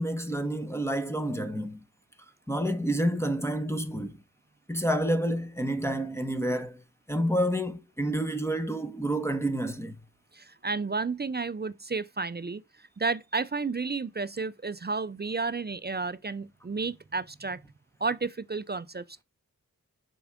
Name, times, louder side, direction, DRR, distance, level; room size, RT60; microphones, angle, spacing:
voice 1, 0.0-1.8 2.5-4.2 4.7-6.8 7.1-9.9, right 1 dB, 5° left, 1.1 m, -29 dB
voice 2, 10.3-17.6 18.0-19.2, right 4 dB, 30° right, 0.4 m, -32 dB
6.9 x 4.6 x 3.6 m
wide cardioid pair, 45°, 35 cm